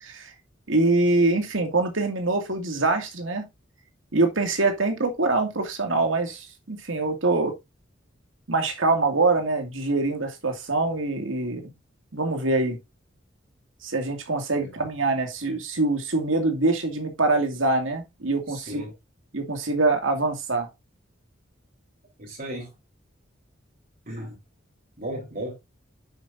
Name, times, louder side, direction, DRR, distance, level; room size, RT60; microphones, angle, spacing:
voice 1, 0.0-0.3 0.7-3.4 4.1-7.5 8.5-11.6 12.1-12.8 13.8-18.8 19.3-20.7, right 2 dB, 90° right, 2.3 m, -24 dB
voice 2, 18.5-18.9 22.2-22.7 24.1-24.4 25.0-25.5, right 1 dB, 50° right, 4.0 m, -35 dB
9.6 x 8.0 x 2.6 m
head